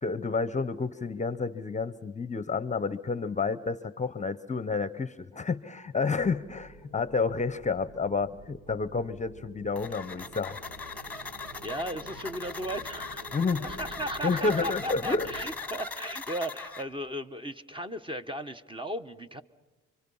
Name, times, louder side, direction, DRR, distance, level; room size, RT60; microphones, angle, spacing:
voice 1, 0.0-10.6 13.3-13.7 14.2-15.3, left 4 dB, 25° left, 16 dB, 0.8 m, -30 dB
sound 1, 6.2-15.4, right 2 dB, 85° right, 4.0 m, -49 dB
sound 2, 9.8-16.8, left 4 dB, 5° left, 1.5 m, -40 dB
voice 2, 11.6-13.3 13.6-19.4, equal, 15° right, 10 dB, 1.0 m, -36 dB
Slam, 13.7-15.6, right 1 dB, 60° right, 3.3 m, -51 dB
30.0 x 24.0 x 5.5 m, 1.2 s
cardioid pair, 90°, 30 cm